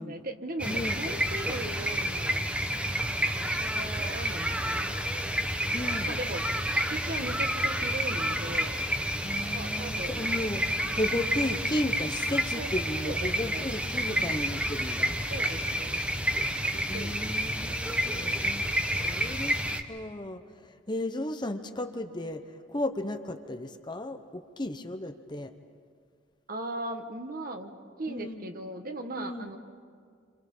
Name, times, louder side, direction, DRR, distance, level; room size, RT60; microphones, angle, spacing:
voice 1, 0.0-2.5 3.2-5.2 6.1-8.8 9.5-10.4 12.6-12.7 13.0-13.7 14.1-14.4 15.3-16.1 16.6-18.5 26.5-27.7 28.0-29.6, right 2 dB, 50° right, 6 dB, 1.4 m, -39 dB
sound 1, 0.6-19.8, equal, 5° right, 1.0 m, -30 dB
voice 2, 0.7-1.0 5.7-6.2 9.2-10.6 11.0-15.1 16.9-19.6 19.9-25.5 28.1-28.5 29.2-29.5, left 1 dB, 25° left, 7 dB, 0.9 m, -34 dB
30.0 x 26.0 x 5.5 m, 2.1 s
head